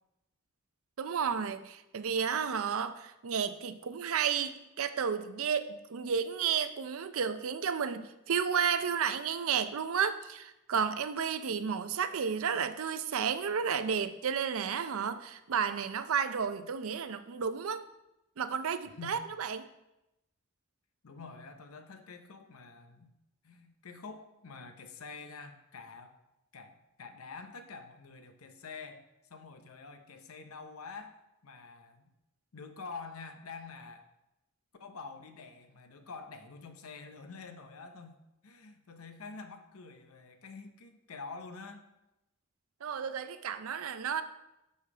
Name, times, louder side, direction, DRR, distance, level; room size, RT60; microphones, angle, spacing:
voice 1, 1.0-17.8 18.4-19.6 42.8-44.2, right 7 dB, 70° right, 11 dB, 0.5 m, -32 dB
voice 2, 18.8-19.3 21.0-23.1 23.4-26.2 26.5-29.0 29.3-32.0 32.5-34.1 34.8-38.2 38.4-41.9, left 4 dB, 80° left, 8 dB, 0.8 m, -47 dB
6.4 x 5.5 x 4.9 m, 0.90 s
head